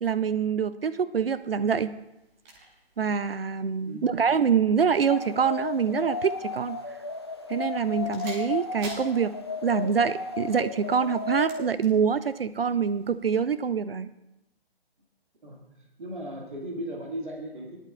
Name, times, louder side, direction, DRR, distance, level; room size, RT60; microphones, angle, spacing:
voice 1, 0.0-2.0 3.0-6.8 7.5-9.3 9.6-14.1, right 6 dB, 70° right, 14 dB, 0.5 m, -25 dB
sound 1, 1.2-13.7, right 2 dB, 10° right, 0.9 m, -51 dB
sound 2, 5.1-11.7, left 4 dB, 25° left, 0.4 m, -35 dB
voice 2, 15.4-17.8, equal, 50° right, 0 dB, 1.9 m, -37 dB
19.5 x 11.0 x 2.3 m, 0.90 s
figure-of-eight pair, 140°, 31 cm